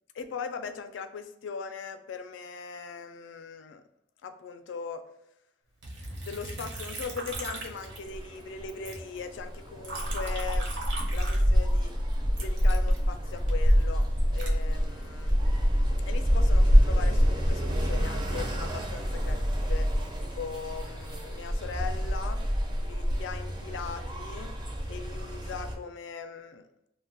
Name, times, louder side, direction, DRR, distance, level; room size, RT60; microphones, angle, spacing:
voice 1, 0.1-3.8 4.2-5.0 6.2-10.7 11.1-11.9 12.3-15.4 16.1-19.9 20.2-22.4 22.8-24.5 24.9-26.7, left 5 dB, 85° left, 8 dB, 0.3 m, -40 dB
Liquid, 5.8-8.4 8.7-11.9 12.3-15.4 15.9-16.5, right 2 dB, 85° right, 0.7 m, -40 dB
sound 1, 7.0-25.8, equal, 25° right, 0.4 m, -27 dB
2.2 x 2.1 x 3.8 m, 0.83 s
head